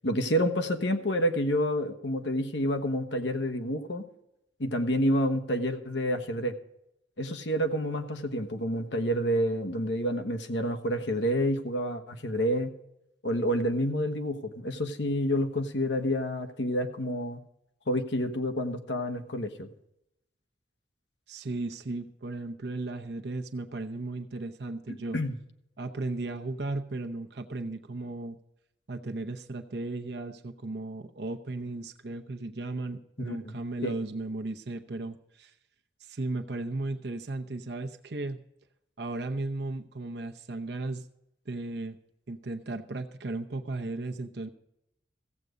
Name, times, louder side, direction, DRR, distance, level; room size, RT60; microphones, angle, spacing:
voice 1, 0.0-4.1 4.6-6.5 7.2-12.7 13.2-17.4 17.9-19.7 24.9-25.3 33.2-33.5 33.8-33.9, equal, 85° left, 6 dB, 1.2 m, -29 dB
voice 2, 21.3-25.2 25.8-28.4 28.9-35.5 36.0-38.4 39.0-41.1 41.5-42.0 42.3-44.5, right 2 dB, 65° right, 4 dB, 0.8 m, -35 dB
15.0 x 8.1 x 5.1 m, 0.83 s
head